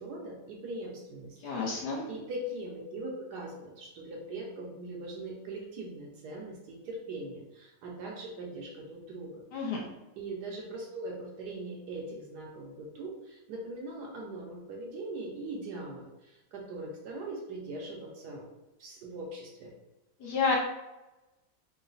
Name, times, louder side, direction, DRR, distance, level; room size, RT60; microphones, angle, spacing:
voice 1, 0.0-1.4 2.1-9.4 10.2-18.4 18.8-19.7, right 2 dB, 70° right, -1 dB, 1.1 m, -41 dB
voice 2, 1.4-2.0 9.5-9.8 20.2-20.5, left 4 dB, 65° left, -2 dB, 1.1 m, -30 dB
3.8 x 2.1 x 3.9 m, 1.0 s
omnidirectional pair, 2.0 m